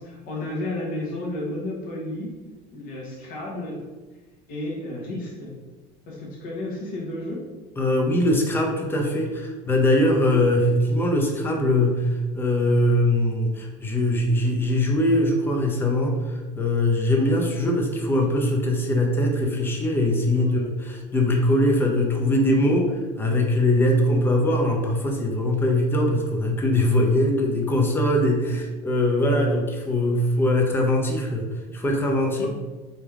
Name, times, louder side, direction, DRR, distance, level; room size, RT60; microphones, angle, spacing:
voice 1, 0.0-2.3 2.7-3.8 4.5-5.6 6.1-7.5 20.3-20.5 28.4-28.6 29.2-29.4 32.4-32.5, left 1 dB, 50° left, -4 dB, 1.3 m, -32 dB
voice 2, 7.8-31.5 31.7-32.5, left 1 dB, 10° left, 1 dB, 0.6 m, -22 dB
4.1 x 3.4 x 3.6 m, 1.2 s
cardioid pair, 150°, 19 cm